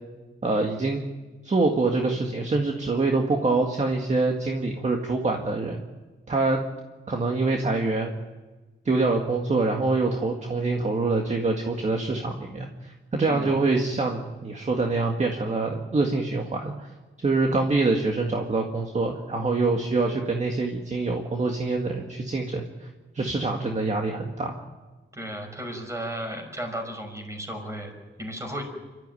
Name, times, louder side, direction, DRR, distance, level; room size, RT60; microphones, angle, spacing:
voice 1, 0.4-1.0 1.4-5.8 6.3-6.6 7.1-8.1 8.9-16.9 17.2-22.9 23.1-24.6, right 3 dB, 35° right, 2 dB, 1.9 m, -25 dB
voice 2, 25.1-28.6, equal, 15° right, 3 dB, 5.7 m, -34 dB
29.5 x 13.5 x 9.2 m, 1.2 s
wide cardioid pair, 150°, 20 cm